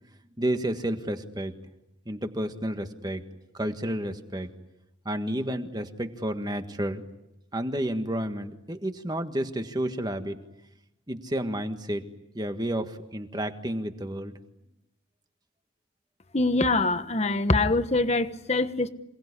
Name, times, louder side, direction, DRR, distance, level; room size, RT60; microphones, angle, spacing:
voice 1, 0.4-1.5 2.0-3.2 3.5-4.5 5.0-7.0 7.5-10.4 11.1-12.1 12.3-14.3, right 1 dB, 20° right, 7 dB, 1.6 m, -31 dB
voice 2, 16.3-18.9, left 2 dB, 35° left, 10 dB, 1.2 m, -24 dB
27.5 x 19.5 x 9.9 m, 0.91 s
head